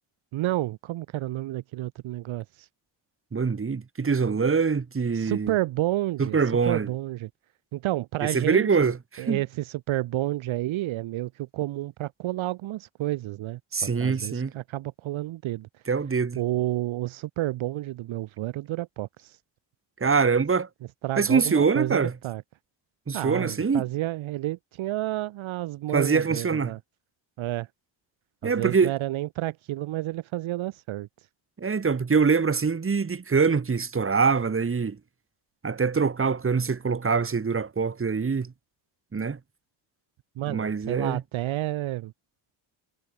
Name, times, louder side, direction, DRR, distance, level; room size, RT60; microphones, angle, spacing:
voice 1, 0.3-2.7 5.1-6.4 6.6-7.3 7.7-15.7 16.3-19.4 21.0-22.4 23.1-26.8 27.4-27.7 28.4-31.1 40.4-42.1, right 16 dB, 70° right, 1.0 m, -30 dB
voice 2, 3.3-5.5 6.2-6.9 8.3-9.4 13.7-14.5 15.9-16.4 20.0-20.7 21.2-22.1 23.1-23.9 25.9-26.7 28.4-28.9 31.6-35.0 35.6-38.5 39.1-39.4 40.5-41.2, right 5 dB, 25° right, 2.9 m, -24 dB
cardioid pair, 130°, 49 cm